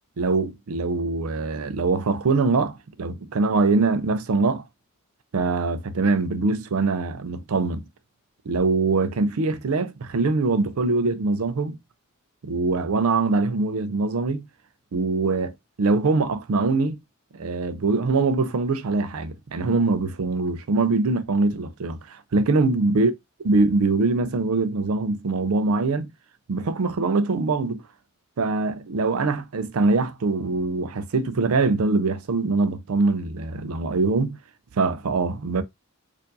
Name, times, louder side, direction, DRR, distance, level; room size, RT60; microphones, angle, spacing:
voice 1, 0.2-4.6 5.3-7.9 8.5-11.8 12.4-14.4 14.9-17.0 17.3-23.1 23.4-26.1 26.5-27.8 28.4-34.4 34.8-35.6, right 3 dB, 75° right, 0.5 m, -23 dB
4.4 x 2.6 x 2.6 m
head